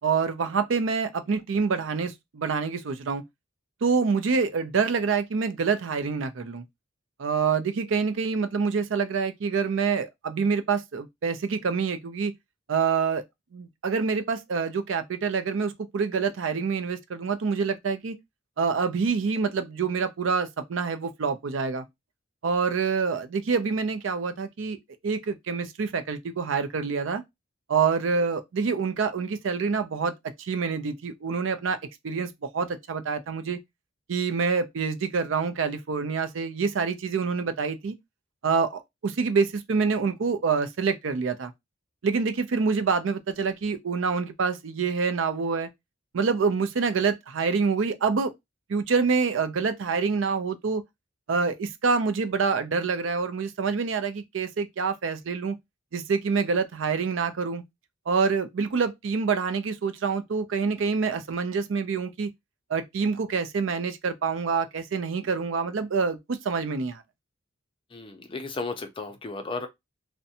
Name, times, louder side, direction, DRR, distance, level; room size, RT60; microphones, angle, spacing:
voice 1, 0.0-3.2 3.8-6.6 7.2-12.3 12.7-13.2 13.5-18.1 18.6-21.8 22.4-27.2 27.7-30.1 30.4-31.8 32.0-33.6 34.1-37.9 38.4-41.5 42.0-45.7 46.1-48.3 48.7-50.8 51.3-55.6 55.9-57.6 58.1-62.3 62.7-67.0, right 5 dB, 70° right, 0.5 m, -26 dB
voice 2, 67.9-69.7, left 3 dB, 25° left, 0.5 m, -34 dB
2.5 x 2.1 x 2.7 m
head